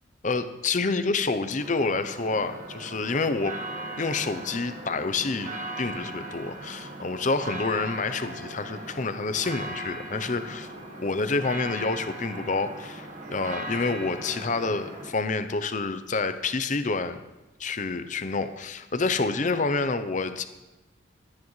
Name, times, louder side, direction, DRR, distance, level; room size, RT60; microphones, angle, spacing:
voice 1, 0.2-3.6 4.0-10.7 11.0-17.2 17.6-20.4, left 3 dB, 40° left, 10 dB, 0.6 m, -28 dB
sound 1, 1.6-15.1, right 1 dB, 40° right, 1.6 m, -38 dB
24.5 x 9.6 x 3.2 m, 1.1 s
head